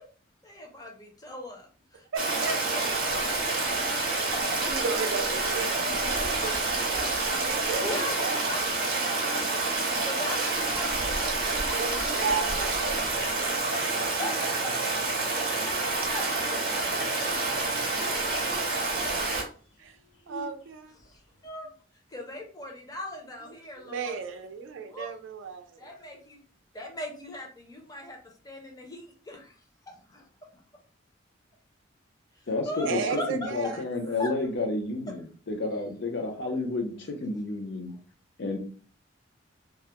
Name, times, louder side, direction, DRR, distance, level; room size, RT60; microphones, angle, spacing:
voice 1, 0.4-2.1 2.7-2.8 4.3-4.5 7.4-7.5 7.8-8.6 9.5-11.0 11.3-12.8 13.7-14.3 14.6-14.7 15.0-16.2 21.0-21.7 22.1-24.2 24.9-25.1 25.8-26.4 26.7-28.2 28.4-29.6 29.9-30.3 30.5-30.6 32.3-33.8 34.2-34.3, left 1 dB, 20° left, 1 dB, 0.6 m, -39 dB
voice 2, 2.1-2.5 4.7-8.4 11.8-13.9 19.8-20.0 20.3-20.9 23.8-25.9 32.9-33.8, right 5 dB, 75° right, 6 dB, 0.4 m, -34 dB
Stream, 2.2-19.4, right 3 dB, 50° right, 0.7 m, -28 dB
sound 1, 5.1-6.9 7.3-10.2 10.5-11.8 12.2-14.5 14.8-17.3 17.7-17.8 18.0-21.5, left 1 dB, 90° left, 0.8 m, -48 dB
voice 3, 32.5-37.9 38.4-38.6, left 2 dB, 65° left, 4 dB, 0.5 m, -31 dB
2.3 x 2.1 x 2.8 m, 0.41 s
head